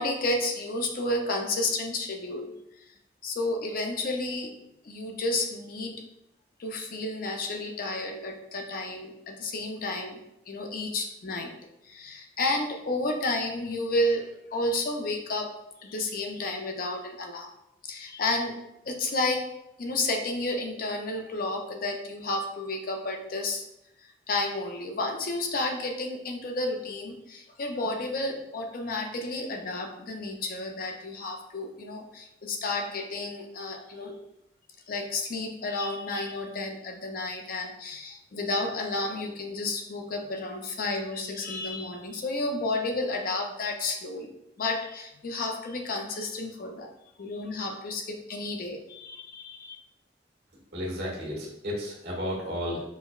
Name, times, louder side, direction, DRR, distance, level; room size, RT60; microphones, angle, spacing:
voice 1, 0.0-2.5 3.2-4.5 4.8-5.9 6.6-10.2 10.5-11.5 11.8-15.5 15.8-17.5 17.8-18.6 18.8-19.5 19.8-23.6 24.3-34.2 34.9-44.3 44.6-46.9 47.2-49.8, left 2 dB, 55° left, 3 dB, 0.5 m, -31 dB
voice 2, 50.7-52.8, equal, 65° right, -3 dB, 1.3 m, -33 dB
5.4 x 2.1 x 2.3 m, 0.83 s
head